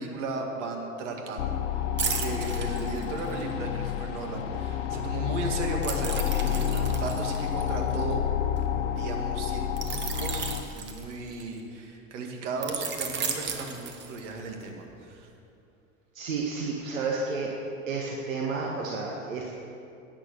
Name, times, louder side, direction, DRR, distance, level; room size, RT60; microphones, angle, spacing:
voice 1, 0.0-8.3 8.9-15.3, right 3 dB, 60° right, 2 dB, 2.1 m, -36 dB
sound 1, 1.4-10.6, left 9 dB, 65° left, 0.9 m, -29 dB
sound 2, 2.0-3.5 5.8-8.6 9.8-11.6 12.6-14.5 14.9-15.1, right 6 dB, 25° right, 1.4 m, -35 dB
voice 2, 16.1-17.5 17.9-19.5, right 4 dB, 75° right, -2 dB, 1.5 m, -31 dB
11.0 x 8.9 x 6.9 m, 2.6 s
hypercardioid pair, 90°, 40 cm